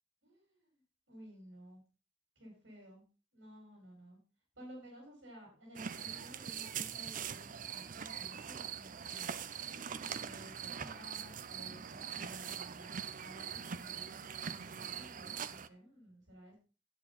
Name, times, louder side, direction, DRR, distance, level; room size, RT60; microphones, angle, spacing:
voice 1, 0.2-0.8 1.1-1.8 2.4-3.0 3.3-4.2 4.6-9.5 10.2-16.6, equal, 90° right, -2 dB, 6.2 m, -55 dB
sound 1, 5.8-15.7, right 8 dB, 45° right, 0.6 m, -42 dB
11.0 x 8.9 x 4.1 m, 0.33 s
head